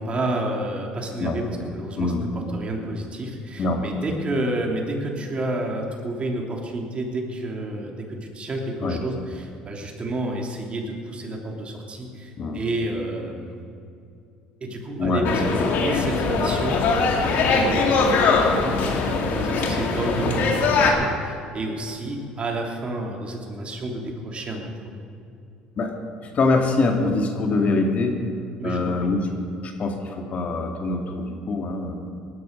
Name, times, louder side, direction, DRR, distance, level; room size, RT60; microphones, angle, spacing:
voice 1, 0.0-2.1 2.5-13.6 14.6-17.1 17.4-24.7 28.6-29.1, right 1 dB, 35° right, 1 dB, 3.1 m, -30 dB
voice 2, 15.0-15.3 19.6-19.7 25.8-28.2 28.6-29.3 29.6-32.0, left 3 dB, 45° left, 3 dB, 2.2 m, -24 dB
sound 1, 15.2-20.9, left 4 dB, 65° left, 2.4 m, -21 dB
18.0 x 12.5 x 5.3 m, 2.5 s
supercardioid pair, 80°, 3 cm